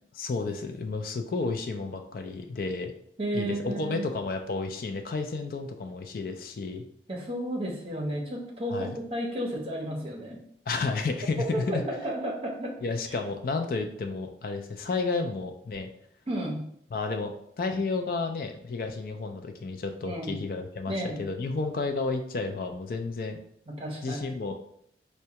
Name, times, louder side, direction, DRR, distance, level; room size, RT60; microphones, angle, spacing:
voice 1, 0.1-2.9 3.3-6.8 8.7-9.0 10.7-11.8 12.8-15.9 16.9-23.4 24.0-24.6, left 3 dB, 50° left, 5 dB, 0.3 m, -31 dB
voice 2, 3.2-4.1 7.1-10.4 11.5-12.7 13.1-13.2 16.3-16.6 20.0-20.4 20.9-21.2 23.7-24.2, right 1 dB, 30° right, -2 dB, 0.7 m, -32 dB
4.5 x 2.2 x 2.8 m, 0.69 s
head